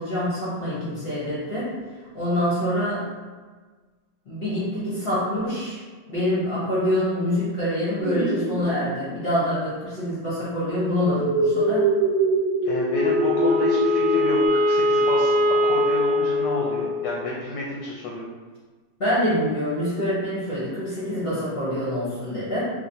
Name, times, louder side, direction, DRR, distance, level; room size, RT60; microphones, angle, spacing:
voice 1, 0.0-1.7 2.1-3.0 4.3-5.8 6.0-11.9 19.0-22.7, left 1 dB, 45° left, -10 dB, 0.9 m, -25 dB
sound 1, 8.0-9.2 11.1-14.5, right 2 dB, 80° right, 1.4 m, -23 dB
voice 2, 12.6-15.3 15.6-18.2, left 2 dB, 70° left, -4 dB, 1.1 m, -30 dB
Wind instrument woodwind instrument, 12.9-17.3, left 2 dB, 60° right, 0.7 m, -22 dB
3.1 x 3.0 x 2.7 m, 1.4 s
omnidirectional pair, 2.1 m